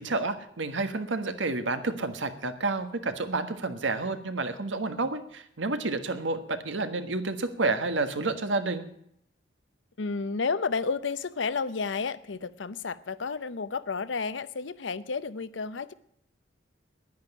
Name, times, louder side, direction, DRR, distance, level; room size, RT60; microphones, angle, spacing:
voice 1, 0.0-8.8, right 3 dB, 90° right, 9 dB, 1.4 m, -30 dB
voice 2, 10.0-15.9, left 4 dB, 75° left, 15 dB, 0.7 m, -31 dB
10.5 x 10.5 x 9.9 m, 0.71 s
head